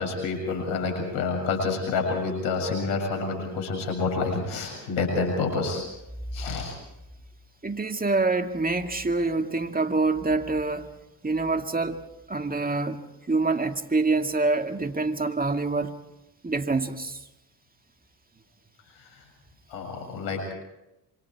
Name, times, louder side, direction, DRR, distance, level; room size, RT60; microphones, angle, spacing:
voice 1, 0.0-5.9 6.3-6.8 19.0-19.2 19.7-20.5, left 4 dB, 85° left, 2 dB, 7.4 m, -28 dB
voice 2, 7.6-10.9 11.2-12.0 12.3-13.0 13.3-15.9 16.4-17.2, right 3 dB, 20° right, 7 dB, 2.2 m, -26 dB
27.5 x 25.5 x 4.8 m, 0.91 s
supercardioid pair, 55°, 45 cm